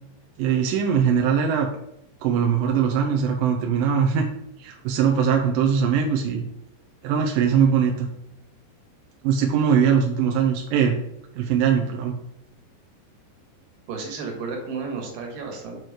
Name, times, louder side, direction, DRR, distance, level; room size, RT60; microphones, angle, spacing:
voice 1, 0.4-1.7 2.2-4.3 4.6-6.4 7.0-8.1 9.2-11.0 11.4-12.1, right 7 dB, 80° right, 1 dB, 2.2 m, -21 dB
voice 2, 13.9-15.8, right 4 dB, 65° right, 1 dB, 3.1 m, -32 dB
8.0 x 4.5 x 4.7 m, 0.81 s
omnidirectional pair, 4.5 m